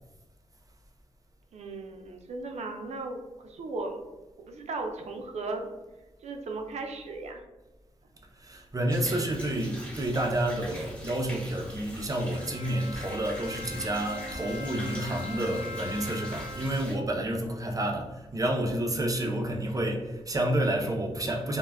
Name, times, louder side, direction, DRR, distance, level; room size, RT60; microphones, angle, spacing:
voice 1, 1.5-4.0 4.4-5.7 6.2-7.4, right 3 dB, 90° right, 0.4 m, -36 dB
voice 2, 8.4-21.6, right 1 dB, 30° right, 0.5 m, -29 dB
sound 1, 8.9-16.9, equal, 10° left, 1.0 m, -43 dB
Bowed string instrument, 12.1-17.2, left 2 dB, 80° left, 0.6 m, -42 dB
2.3 x 2.1 x 3.3 m
wide cardioid pair, 80°, 11 cm